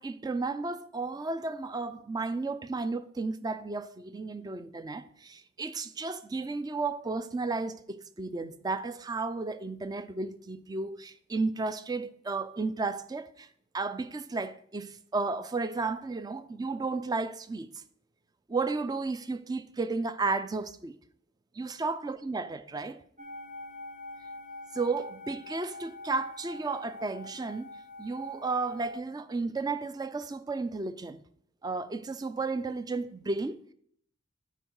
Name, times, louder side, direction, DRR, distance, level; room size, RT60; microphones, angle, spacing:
voice 1, 0.0-13.5 13.7-17.7 18.5-21.0 21.5-23.0 24.7-27.7 28.0-31.2 31.6-33.6, right 3 dB, 20° right, 0.4 m, -33 dB
sound 1, 23.2-29.0, left 2 dB, 40° right, 1.1 m, -45 dB
9.9 x 4.5 x 4.6 m
head